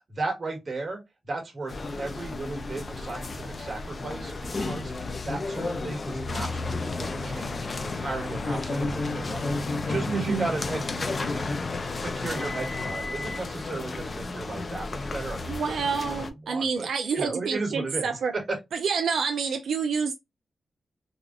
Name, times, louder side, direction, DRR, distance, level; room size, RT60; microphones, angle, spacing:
voice 1, 0.1-1.0 1.3-11.6 12.0-15.7 16.5-16.9 17.1-18.2 18.5-18.6, right 3 dB, 40° right, 1.3 m, -35 dB
sound 1, 1.7-16.3, left 3 dB, 40° left, 0.4 m, -32 dB
voice 2, 10.1-10.5 15.5-18.3 18.7-20.1, right 5 dB, 80° right, 0.3 m, -28 dB
3.4 x 2.4 x 2.4 m
wide cardioid pair, 110°, 0 cm